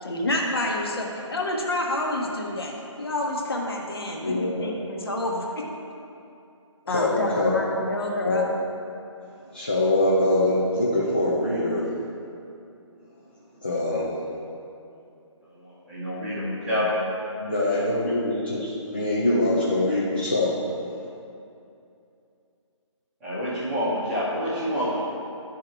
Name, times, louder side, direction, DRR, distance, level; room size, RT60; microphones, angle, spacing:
voice 1, 0.0-5.6 6.9-8.5, left 1 dB, 50° left, 0 dB, 1.1 m, -28 dB
voice 2, 4.2-4.7 6.9-7.5 8.2-8.5 9.5-11.8 13.6-14.2 17.4-20.6, left 1 dB, 20° left, -6 dB, 0.4 m, -24 dB
voice 3, 15.5-17.0 17.7-17.8 23.2-25.0, equal, 5° right, -14 dB, 0.9 m, -28 dB
11.5 x 3.8 x 4.4 m, 2.6 s
hypercardioid pair, 175°, 16 cm